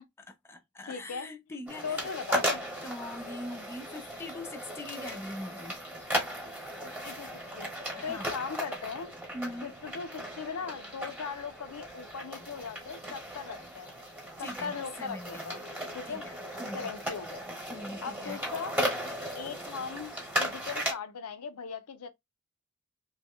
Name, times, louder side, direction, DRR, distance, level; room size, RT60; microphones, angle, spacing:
voice 1, 0.3-2.1 2.8-5.8 8.0-8.4 9.3-9.7 14.4-15.5 16.1-16.9 17.7-18.4, left 1 dB, 10° left, 0.4 m, -42 dB
voice 2, 0.8-1.3 1.8-2.6 6.8-7.3 7.6-7.7 8.0-9.1 9.6-13.9 14.4-15.6 15.9-16.2 16.7-17.4 18.0-18.7 19.3-22.1, left 5 dB, 90° left, 0.6 m, -39 dB
sound 1, 1.7-20.9, equal, 10° right, 1.0 m, -36 dB
3.0 x 2.1 x 3.5 m
head